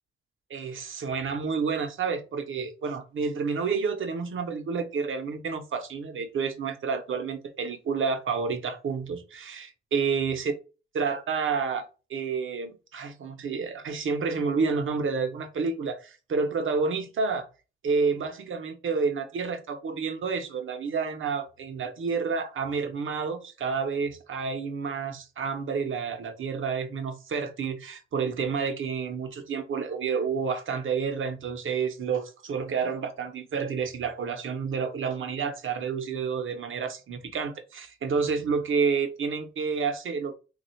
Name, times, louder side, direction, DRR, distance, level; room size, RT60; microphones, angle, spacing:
voice 1, 0.5-10.5 10.9-11.8 12.1-17.5 17.8-40.3, right 5 dB, 70° right, 0.7 m, -29 dB
3.4 x 2.4 x 4.3 m
wide cardioid pair, 125°, 21 cm